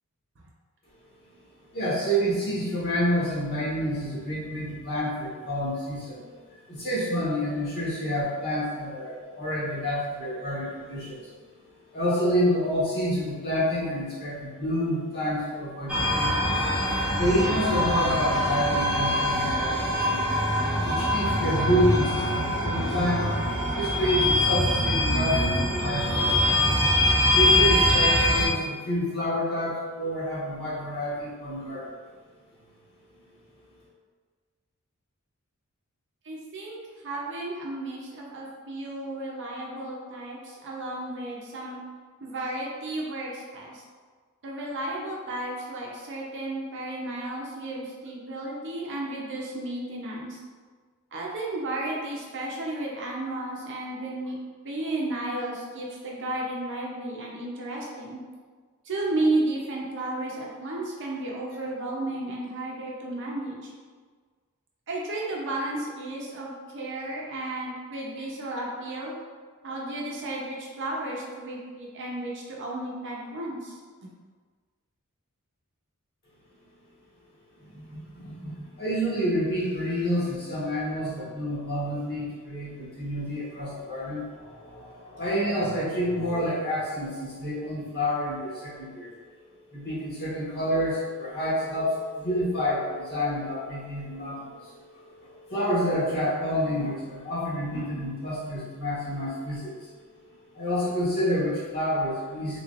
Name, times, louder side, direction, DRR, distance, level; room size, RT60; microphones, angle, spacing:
voice 1, 1.7-6.2 6.7-11.3 11.9-20.5 20.8-23.3 23.6-26.7 27.3-32.0 33.1-33.2 77.6-89.2 89.7-99.9 100.3-102.6, equal, 50° left, -8 dB, 1.2 m, -28 dB
sound 1, 15.9-28.5, left 1 dB, 5° right, 0.6 m, -24 dB
voice 2, 36.2-36.8 37.0-41.8 42.2-43.8 44.4-50.4 51.1-54.4 54.6-58.2 58.8-63.7 64.9-69.2 69.6-73.8, right 2 dB, 55° right, -3 dB, 0.7 m, -33 dB
3.4 x 3.1 x 2.5 m, 1.5 s
head